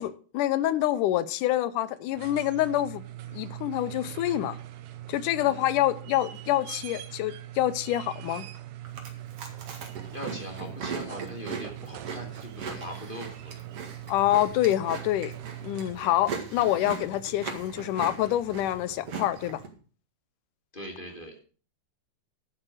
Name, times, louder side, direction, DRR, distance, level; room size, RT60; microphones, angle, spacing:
voice 1, 0.0-3.1 3.3-4.6 5.1-8.5 14.1-15.3 15.6-19.6, left 13 dB, 90° left, 2.3 m, -26 dB
sound 1, 2.0-16.4 18.1-18.2, right 13 dB, 85° right, 2.4 m, -42 dB
Chewing mastication, 8.8-19.7, right 5 dB, 50° right, 2.8 m, -40 dB
voice 2, 10.0-13.5 20.7-21.3, equal, 15° left, 2.6 m, -40 dB
11.5 x 7.5 x 6.3 m
omnidirectional pair, 3.6 m